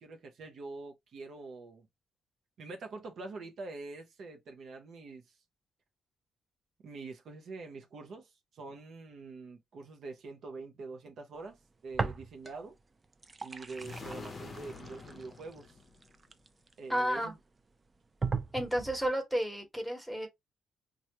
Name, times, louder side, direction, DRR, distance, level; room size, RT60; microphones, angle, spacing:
voice 1, 0.0-1.9 2.6-5.3 6.8-11.6 11.8-12.7 13.4-15.7 16.8-17.4, right 3 dB, 65° right, 0.7 m, -45 dB
sound 1, 11.9-12.7 13.0-17.0 17.6-17.7 18.2-19.1, right 4 dB, 30° right, 0.4 m, -38 dB
sound 2, 13.7-16.3, left 4 dB, 40° left, 0.6 m, -47 dB
voice 2, 16.9-17.3 18.5-20.3, equal, ahead, 1.1 m, -32 dB
3.1 x 2.3 x 2.8 m
cardioid pair, 90°, 0 cm